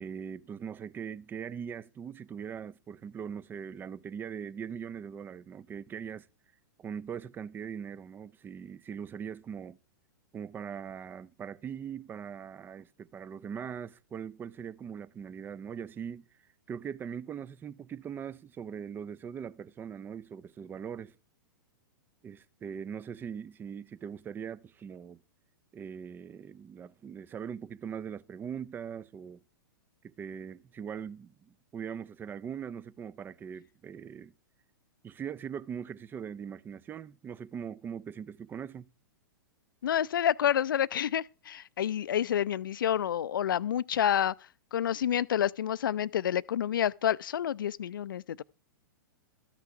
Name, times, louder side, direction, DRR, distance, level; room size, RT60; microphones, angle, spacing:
voice 1, 0.0-6.3 6.8-9.8 10.3-16.2 16.7-21.1 22.2-25.2 25.7-29.4 30.0-34.3 35.0-38.9, right 7 dB, 20° right, 0.5 m, -41 dB
voice 2, 39.8-44.3 44.7-48.4, left 10 dB, 75° left, 0.4 m, -29 dB
13.5 x 6.0 x 5.9 m
hypercardioid pair, 110°, 11 cm